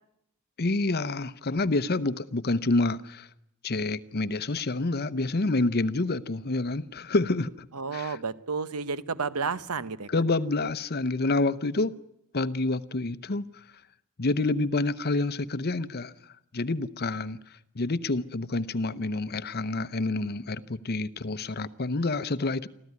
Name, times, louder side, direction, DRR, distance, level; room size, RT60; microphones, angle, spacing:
voice 1, 0.6-3.3 3.6-7.7 7.9-8.2 10.1-12.0 12.3-13.5 14.2-16.1 16.5-17.4 17.8-22.7, left 2 dB, 45° left, 0.8 m, -28 dB
voice 2, 7.7-10.1, right 5 dB, 90° right, 0.9 m, -31 dB
25.5 x 14.5 x 9.6 m
head